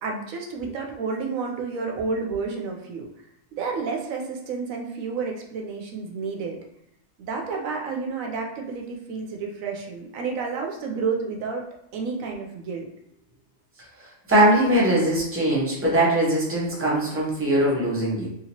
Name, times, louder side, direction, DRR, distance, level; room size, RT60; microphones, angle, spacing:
voice 1, 0.0-3.1 3.5-6.6 7.2-11.6 11.9-12.9, right 4 dB, 85° right, 1 dB, 1.0 m, -30 dB
voice 2, 14.3-18.3, right 1 dB, 10° right, -6 dB, 0.8 m, -21 dB
3.1 x 2.9 x 2.8 m, 0.81 s
omnidirectional pair, 1.4 m